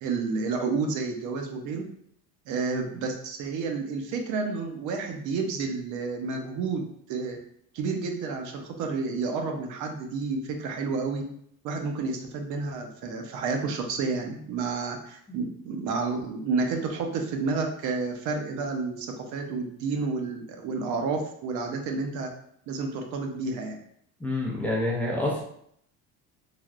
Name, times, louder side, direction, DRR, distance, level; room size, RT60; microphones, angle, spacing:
voice 1, 0.0-1.8 2.5-7.4 7.7-11.2 11.6-22.3 22.7-23.8, right 4 dB, 60° right, 3 dB, 0.6 m, -30 dB
voice 2, 24.2-25.4, left 1 dB, 5° left, -4 dB, 0.3 m, -27 dB
3.3 x 2.4 x 2.4 m, 0.69 s
cardioid pair, 150°, 33 cm